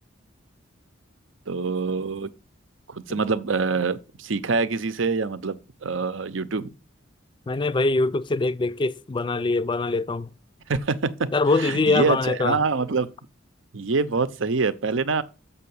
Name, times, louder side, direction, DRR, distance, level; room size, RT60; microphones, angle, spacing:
voice 1, 1.5-2.3 2.9-6.7 10.7-11.3 11.6-13.1 13.7-15.2, right 4 dB, 75° right, 0.8 m, -25 dB
voice 2, 7.5-10.3 11.3-12.6, left 3 dB, 25° left, 0.4 m, -23 dB
6.9 x 5.7 x 7.0 m
head